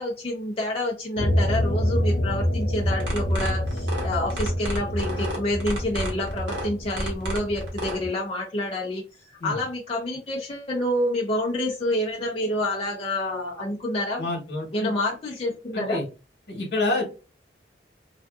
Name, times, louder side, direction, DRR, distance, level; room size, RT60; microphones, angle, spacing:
voice 1, 0.0-9.0 9.4-14.3 14.7-16.0, left 1 dB, 30° left, 0.5 m, -28 dB
sound 1, 1.2-8.1, left 1 dB, 90° left, 0.5 m, -27 dB
sound 2, 2.9-8.0, right 1 dB, 85° right, 1.1 m, -32 dB
voice 2, 14.2-14.9 15.7-16.0 16.5-17.0, left 2 dB, 70° left, 1.1 m, -27 dB
2.5 x 2.4 x 2.3 m
head